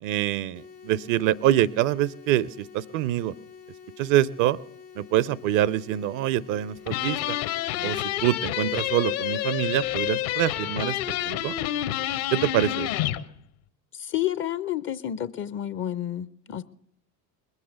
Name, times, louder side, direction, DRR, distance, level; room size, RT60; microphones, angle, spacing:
voice 1, 0.0-3.3 4.0-4.6 5.0-7.4 7.8-11.0 11.2-11.5 12.3-12.9, right 13 dB, 40° right, 0.5 m, -25 dB
sound 1, 0.5-9.5, left 6 dB, 85° left, 1.8 m, -47 dB
sound 2, 6.9-13.2, left 13 dB, 60° left, 1.1 m, -28 dB
voice 2, 13.9-16.6, left 12 dB, 25° left, 0.5 m, -30 dB
21.0 x 8.1 x 6.7 m
figure-of-eight pair, 65°, 50 cm